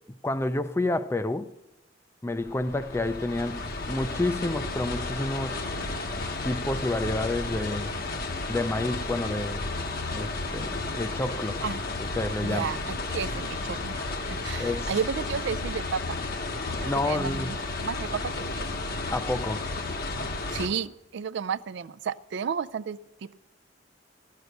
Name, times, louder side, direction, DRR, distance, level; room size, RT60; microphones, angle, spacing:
voice 1, 0.2-1.5 2.2-5.6 6.4-7.9 8.5-9.6 10.1-11.6 12.2-12.7 14.6-14.9 16.8-17.5 19.1-19.7, left 2 dB, 15° left, 0.4 m, -29 dB
sound 1, 2.3-20.7, left 3 dB, 55° left, 1.0 m, -33 dB
voice 2, 12.4-16.2 16.8-17.6 17.8-18.8 20.5-23.3, right 6 dB, 65° right, 0.4 m, -33 dB
13.5 x 6.6 x 7.9 m
head